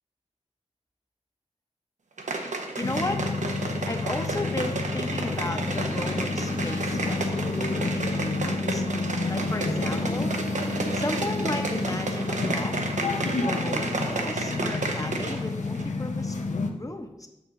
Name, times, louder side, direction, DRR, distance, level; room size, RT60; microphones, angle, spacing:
sound 1, 2.2-15.5 15.8-15.9, right 3 dB, 85° right, 0.8 m, -32 dB
sound 2, 2.8-16.7, left 3 dB, 80° left, 0.7 m, -30 dB
voice 1, 2.8-3.2 3.9-8.8 9.3-10.3 10.9-16.4 16.8-17.3, left 2 dB, 30° left, 5 dB, 0.8 m, -35 dB
Wind, 5.1-13.8, equal, 15° right, 1.1 m, -42 dB
7.2 x 5.8 x 3.7 m, 0.89 s
wide cardioid pair, 75°, 12 cm